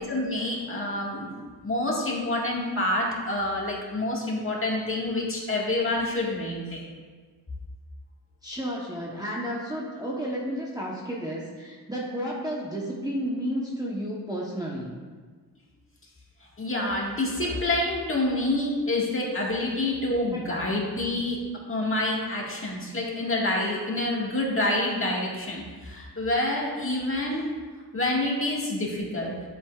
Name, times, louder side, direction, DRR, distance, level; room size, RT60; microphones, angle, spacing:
voice 1, 0.1-6.8 16.6-21.4 21.7-27.4 27.9-29.5, left 1 dB, 30° left, -3 dB, 1.7 m, -27 dB
voice 2, 8.4-14.9 19.5-19.6 20.3-20.6, equal, 10° right, -5 dB, 1.0 m, -32 dB
10.5 x 8.2 x 2.4 m, 1.5 s
wide cardioid pair, 130°, 40 cm